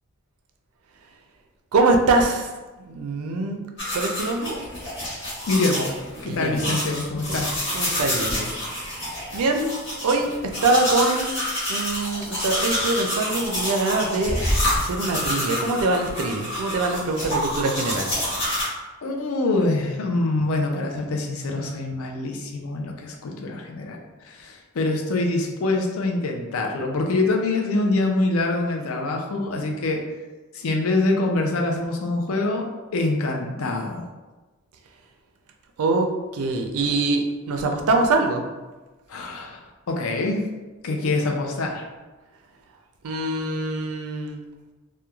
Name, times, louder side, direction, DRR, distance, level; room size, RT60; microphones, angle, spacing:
voice 1, 1.7-2.5 2.8-3.6 3.9-4.6 6.3-6.8 7.3-7.4 7.7-8.5 9.3-9.7 10.0-10.3 10.6-11.3 11.7-14.4 14.8-18.1 35.8-38.4 43.0-44.4, right 2 dB, 80° right, 4 dB, 0.4 m, -23 dB
sound 1, 3.8-18.6, left 1 dB, 55° left, 1.2 m, -28 dB
voice 2, 5.2-5.9 6.2-7.7 19.0-24.0 24.2-30.0 30.5-32.7 32.9-34.0 39.1-39.6 39.9-40.4 40.8-41.8, left 2 dB, 70° left, 2 dB, 0.4 m, -25 dB
3.0 x 2.2 x 2.3 m, 1.2 s
head